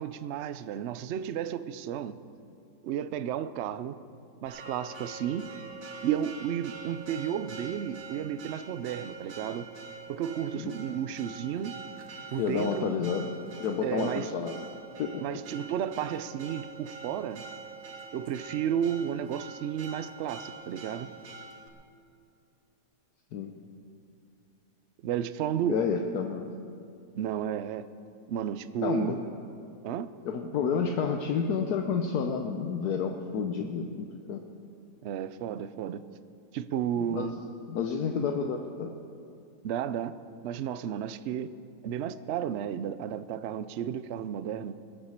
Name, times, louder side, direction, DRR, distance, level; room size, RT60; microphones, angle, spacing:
voice 1, 0.0-2.2 2.8-4.0 4.4-5.5 6.0-9.7 10.1-11.7 12.3-12.9 13.8-14.3 15.2-17.4 18.1-21.1 25.0-25.8 27.1-27.9 28.3-29.2 29.8-30.1 35.0-36.0 36.5-37.4 39.6-40.1 40.4-41.6 41.8-44.8, right 9 dB, 90° right, 13 dB, 0.6 m, -32 dB
Church bell, 4.5-21.7, right 4 dB, 55° right, 1.5 m, -45 dB
voice 2, 12.4-13.3 13.6-14.6 15.0-15.1 23.3-23.5 25.7-26.5 28.8-29.2 30.2-34.4 37.1-37.4 37.7-38.9, left 6 dB, 70° left, 4 dB, 1.3 m, -30 dB
20.0 x 7.3 x 7.3 m, 2.4 s
omnidirectional pair, 1.8 m